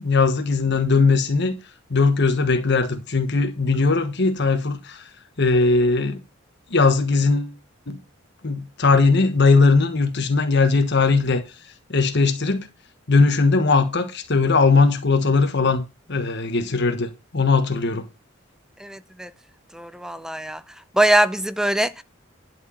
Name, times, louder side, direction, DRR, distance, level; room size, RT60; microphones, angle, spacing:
voice 1, 0.0-1.6 1.9-5.1 5.4-6.2 6.7-7.5 7.9-8.0 8.4-12.7 13.1-15.8 16.1-18.1, left 4 dB, 60° left, 1.4 m, -19 dB
voice 2, 18.8-19.3 19.7-20.6 20.9-22.0, right 1 dB, 5° right, 0.6 m, -22 dB
11.5 x 4.8 x 7.1 m
head